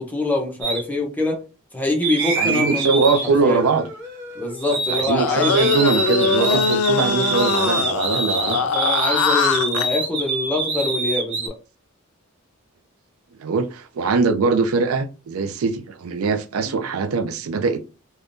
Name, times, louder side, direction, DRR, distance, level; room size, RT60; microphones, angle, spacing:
voice 1, 0.0-1.4 1.7-3.0 3.4-3.6 4.3-5.7 6.4-6.6 8.4-11.6 16.6-16.8, left 2 dB, 10° left, 0.7 m, -24 dB
sound 1, 0.6-0.8 2.0-5.1 5.4-11.5, right 3 dB, 55° right, 0.8 m, -25 dB
voice 2, 2.4-3.9 4.7-8.6 13.4-17.9, right 4 dB, 85° right, 0.4 m, -22 dB
sound 2, 5.2-9.9, left 5 dB, 90° left, 0.4 m, -22 dB
3.4 x 2.2 x 2.5 m
head